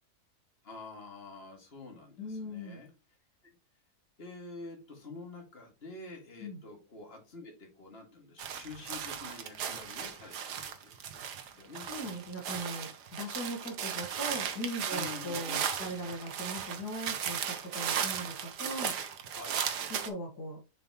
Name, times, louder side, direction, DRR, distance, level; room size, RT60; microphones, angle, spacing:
voice 1, 0.6-2.9 4.2-11.9 14.9-15.6 19.3-19.6, left 3 dB, 35° left, 1 dB, 2.3 m, -47 dB
voice 2, 2.2-2.8 6.4-6.6 11.9-19.0 19.9-20.6, equal, 75° left, 2 dB, 2.1 m, -39 dB
sound 1, 8.4-20.1, right 8 dB, 85° right, 1.5 m, -36 dB
7.0 x 6.0 x 3.0 m, 0.29 s
omnidirectional pair, 1.7 m